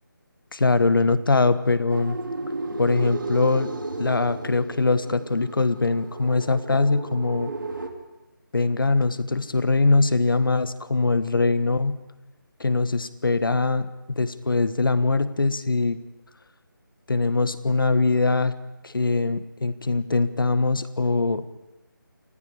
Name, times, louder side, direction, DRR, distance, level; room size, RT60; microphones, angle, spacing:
voice 1, 0.5-2.2 2.8-7.5 8.5-12.0 12.6-16.0 17.1-18.5 18.8-21.4, left 3 dB, 70° left, 13 dB, 1.4 m, -22 dB
sound 1, 1.9-7.9, right 2 dB, 70° right, 2.4 m, -33 dB
28.0 x 19.0 x 4.9 m, 1.0 s
figure-of-eight pair, 165°, 12 cm